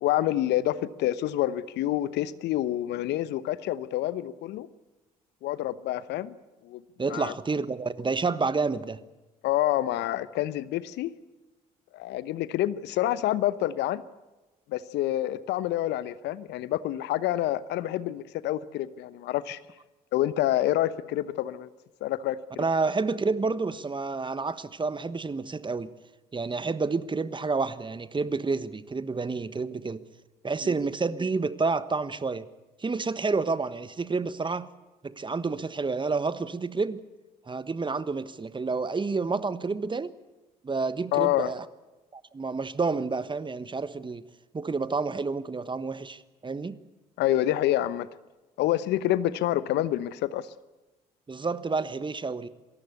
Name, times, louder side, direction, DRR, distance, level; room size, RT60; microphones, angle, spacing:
voice 1, 0.0-4.7 5.4-6.3 6.6-6.8 7.1-7.3 9.4-11.1 11.9-14.0 14.7-19.6 20.1-21.7 22.0-22.6 30.6-30.7 41.1-41.5 47.2-48.1 48.6-50.5, left 13 dB, 65° left, 17 dB, 0.9 m, -27 dB
voice 2, 7.0-9.0 22.6-25.9 26.3-30.0 30.4-32.5 32.8-34.7 35.0-37.0 37.5-40.1 40.6-41.6 42.1-44.2 44.5-46.8 51.3-52.5, right 4 dB, 25° right, 15 dB, 1.3 m, -29 dB
26.0 x 18.0 x 8.4 m, 1.1 s
hypercardioid pair, 50°, 19 cm